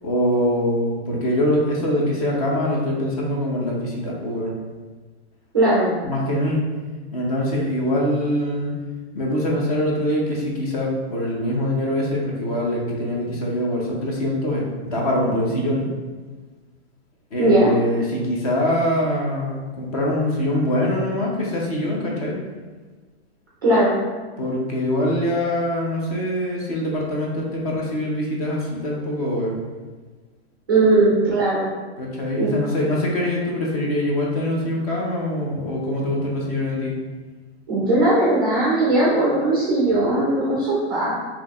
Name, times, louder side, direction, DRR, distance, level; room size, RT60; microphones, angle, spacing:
voice 1, 0.0-4.5 6.0-6.6 7.1-8.7 9.1-15.9 17.3-22.4 24.4-29.6 32.0-37.0, left 1 dB, 35° left, -2 dB, 0.6 m, -23 dB
voice 2, 5.5-5.9 17.4-17.7 23.6-23.9 30.7-31.7 32.4-32.5 37.7-41.2, right 2 dB, 20° right, -6 dB, 0.4 m, -18 dB
4.3 x 2.8 x 2.3 m, 1.4 s
supercardioid pair, 175°, 34 cm